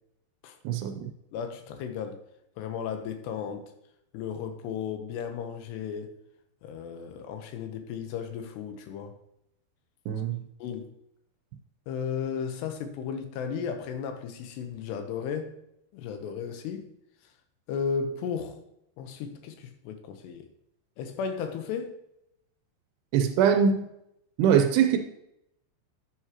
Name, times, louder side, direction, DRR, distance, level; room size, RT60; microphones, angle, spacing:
voice 1, 0.6-1.1 10.1-10.4 23.1-23.9 24.4-25.0, right 7 dB, 80° right, 2.6 m, -22 dB
voice 2, 1.3-2.2 2.6-3.7 4.1-6.1 6.6-9.2 10.6-10.9 11.9-15.6 15.9-16.9 17.7-18.6 19.0-20.5 21.0-22.0, left 6 dB, 80° left, 3.1 m, -34 dB
11.0 x 8.1 x 2.9 m
omnidirectional pair, 4.9 m